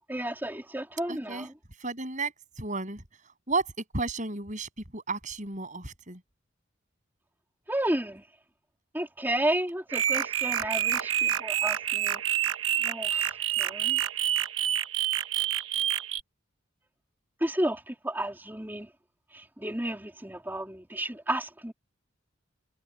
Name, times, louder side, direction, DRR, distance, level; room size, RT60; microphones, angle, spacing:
voice 1, 0.1-1.5 7.7-8.2 8.9-12.2 12.8-13.3 13.6-14.0 17.4-18.9 19.3-21.7, right 1 dB, 10° right, 3.1 m, -32 dB
voice 2, 1.1-1.5 1.8-3.0 3.5-3.7 3.9-6.2, right 3 dB, 40° right, 7.7 m, -33 dB
sound 1, 9.9-16.2, right 11 dB, 80° right, 1.0 m, -28 dB
head